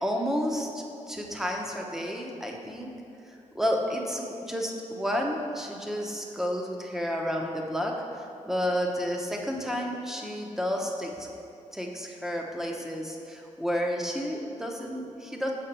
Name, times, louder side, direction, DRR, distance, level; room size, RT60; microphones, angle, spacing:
voice 1, 0.0-2.9 3.5-11.3 11.7-15.5, equal, 5° right, 0 dB, 0.8 m, -31 dB
6.4 x 4.4 x 5.3 m, 2.7 s
cardioid pair, 85°, 13 cm